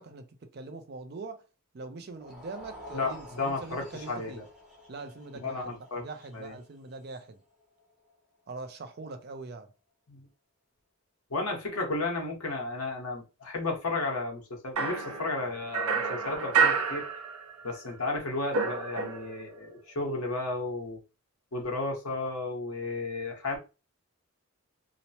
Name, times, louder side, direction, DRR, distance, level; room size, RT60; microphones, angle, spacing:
voice 1, 0.0-1.5 1.7-4.4 4.9-7.4 8.5-9.7, right 3 dB, 45° right, 0.4 m, -43 dB
sound 1, 2.1-8.3, left 1 dB, 5° right, 0.7 m, -50 dB
voice 2, 2.9-4.4 5.4-6.0 6.3-6.5 10.1-10.3 11.3-17.0 17.6-21.0 21.5-23.6, left 3 dB, 85° left, 1.1 m, -33 dB
sound 2, 14.8-17.8 18.0-19.5, right 5 dB, 90° right, 0.6 m, -29 dB
2.9 x 2.1 x 2.8 m
head